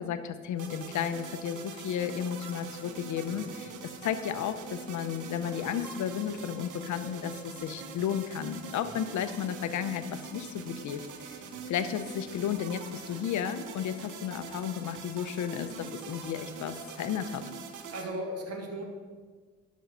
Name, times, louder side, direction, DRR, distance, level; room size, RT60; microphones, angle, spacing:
voice 1, 0.0-17.4, left 9 dB, 70° left, 10 dB, 0.8 m, -33 dB
sound 1, 0.6-18.0, right 5 dB, 80° right, 1.1 m, -43 dB
voice 2, 17.9-18.9, right 1 dB, 55° right, 1 dB, 1.9 m, -38 dB
11.5 x 6.3 x 5.5 m, 1.5 s
cardioid pair, 90°, 30 cm